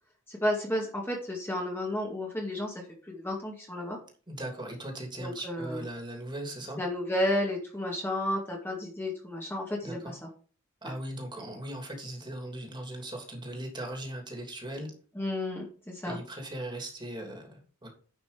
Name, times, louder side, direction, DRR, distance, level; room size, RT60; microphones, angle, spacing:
voice 1, 0.3-4.0 5.2-5.8 6.8-10.3 10.8-10.9 15.2-16.2, left 1 dB, 10° left, -2 dB, 2.1 m, -32 dB
voice 2, 4.3-6.8 9.8-10.2 10.8-14.9 16.0-17.9, right 1 dB, 20° right, 2 dB, 2.9 m, -39 dB
10.5 x 5.9 x 5.2 m, 0.40 s
head